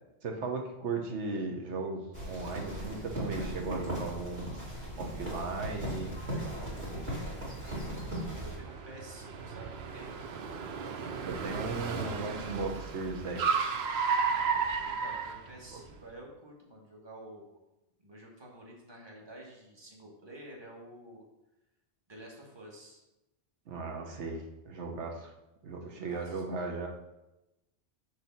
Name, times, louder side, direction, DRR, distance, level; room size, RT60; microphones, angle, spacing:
voice 1, 0.2-4.5 5.0-6.1 6.8-6.9 11.2-13.7 15.7-15.8 23.7-25.3 25.6-26.9, right 3 dB, 85° right, 1 dB, 1.2 m, -37 dB
sound 1, 2.1-8.6, right 1 dB, 45° right, 2.5 m, -38 dB
Car, 6.1-16.0, right 5 dB, 70° right, 0.9 m, -34 dB
voice 2, 6.2-10.6 14.3-17.6 18.0-21.2 22.1-23.0 25.8-26.4, right 1 dB, 25° right, -1 dB, 1.4 m, -50 dB
6.5 x 3.4 x 5.7 m, 0.95 s
omnidirectional pair, 1.1 m